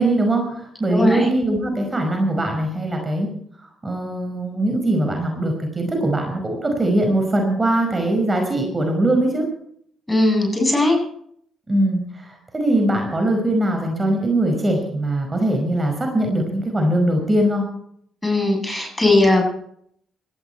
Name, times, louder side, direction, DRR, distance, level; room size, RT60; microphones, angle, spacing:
voice 1, 0.0-3.3 3.8-9.5 11.7-17.6, right 1 dB, 25° right, 3 dB, 5.1 m, -21 dB
voice 2, 0.9-1.3 10.1-11.0 18.2-19.4, left 2 dB, 15° left, 2 dB, 7.9 m, -18 dB
18.0 x 15.0 x 4.4 m, 0.67 s
supercardioid pair, 55°, 0 cm